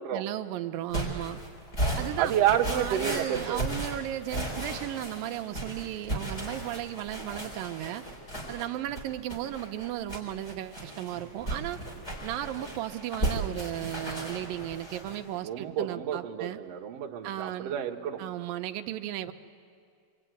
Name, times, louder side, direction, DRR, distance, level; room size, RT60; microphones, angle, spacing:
voice 1, 0.1-1.4 2.0-2.4 2.7-8.0 8.5-11.8 12.2-16.6 17.2-17.8 18.2-19.3, right 13 dB, 85° right, 7 dB, 2.5 m, -35 dB
sound 1, 0.9-15.2, right 1 dB, 20° left, 4.3 m, -35 dB
voice 2, 2.2-3.6 15.4-18.2, right 10 dB, 55° right, 0 dB, 2.2 m, -29 dB
25.5 x 24.0 x 9.2 m, 2.2 s
omnidirectional pair, 3.9 m